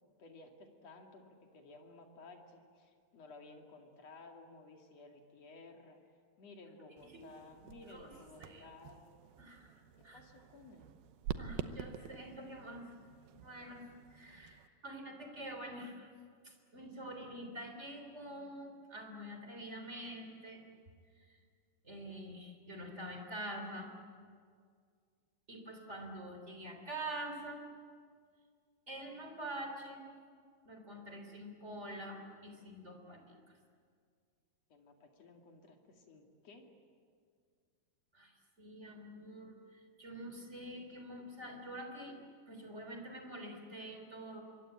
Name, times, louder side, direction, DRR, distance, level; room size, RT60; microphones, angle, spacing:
voice 1, 0.2-6.0 6.4-9.3 10.0-11.0 34.7-36.7, left 3 dB, 45° left, 2 dB, 3.2 m, -56 dB
sound 1, 7.0-14.7, right 9 dB, 75° right, 2.7 m, -48 dB
voice 2, 9.4-9.7 10.0-10.2 11.4-12.9 13.3-13.8 14.1-16.1 16.4-20.6 21.2-21.3 21.8-23.9 25.5-27.7 28.9-30.0 30.6-33.6 38.1-38.3 38.6-42.2 42.5-44.4, right 1 dB, 20° right, 3 dB, 3.2 m, -46 dB
26.0 x 23.0 x 8.8 m, 2.1 s
omnidirectional pair, 4.4 m